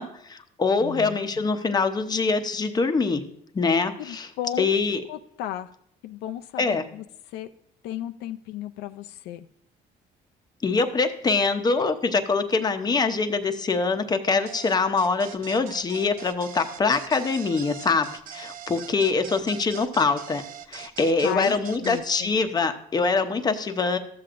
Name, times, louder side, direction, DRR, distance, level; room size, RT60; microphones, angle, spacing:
voice 1, 0.0-3.2 3.5-4.3 4.6-5.0 6.6-6.8 10.6-20.4 20.7-24.0, left 4 dB, 25° left, 7 dB, 0.7 m, -24 dB
voice 2, 0.8-1.5 4.0-4.7 5.1-5.7 6.0-7.5 7.8-9.5 21.2-22.3, left 12 dB, 80° left, 8 dB, 0.4 m, -35 dB
sound 1, 14.5-22.0, right 9 dB, 55° right, 0.6 m, -42 dB
13.5 x 7.6 x 2.5 m, 0.73 s
cardioid pair, 110°, 17 cm